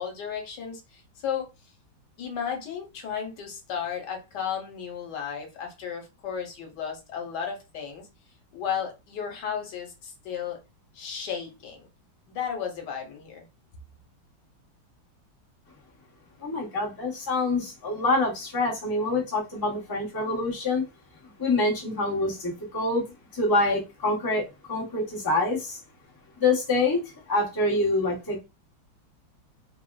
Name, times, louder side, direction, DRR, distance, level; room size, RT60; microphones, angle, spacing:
voice 1, 0.0-1.5 2.2-8.1 8.5-10.6 10.9-11.9 12.3-13.5, left 7 dB, 70° left, 1.4 m, -34 dB
voice 2, 16.4-20.8 21.4-23.0 23.3-25.8 26.4-27.0 27.3-28.4, left 2 dB, 35° left, 0.3 m, -26 dB
3.3 x 2.4 x 2.2 m
omnidirectional pair, 2.1 m